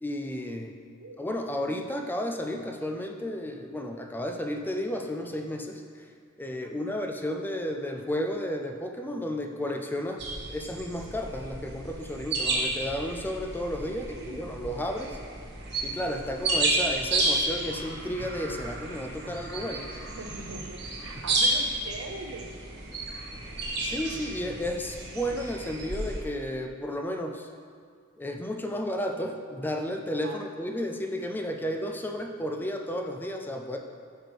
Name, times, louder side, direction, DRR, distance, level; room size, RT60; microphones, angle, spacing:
voice 1, 0.0-0.7 1.2-6.1 6.4-15.2 15.8-19.9 23.8-27.5 28.2-33.8, left 1 dB, 10° left, 3 dB, 0.3 m, -33 dB
voice 2, 6.6-7.0 13.8-14.5 20.0-22.6 30.2-30.5, right 2 dB, 75° right, 4 dB, 0.7 m, -42 dB
sound 1, 10.2-26.2, right 2 dB, 55° right, 1.5 m, -32 dB
9.7 x 6.5 x 3.4 m, 2.1 s
head